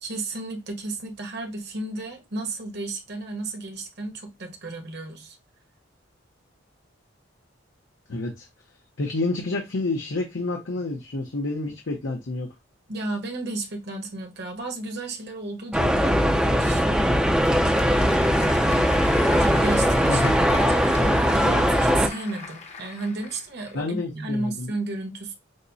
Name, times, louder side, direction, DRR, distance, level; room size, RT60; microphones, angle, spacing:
voice 1, 0.0-5.4 12.9-16.8 19.4-25.3, right 2 dB, 55° right, 1.1 m, -33 dB
voice 2, 8.1-8.5 9.0-12.5 20.1-20.3 23.7-24.7, left 2 dB, 70° left, 0.8 m, -29 dB
sound 1, 15.7-22.1, equal, 5° right, 0.5 m, -20 dB
Applause / Crowd, 17.0-23.8, left 4 dB, 35° left, 0.7 m, -38 dB
6.4 x 2.1 x 2.7 m
head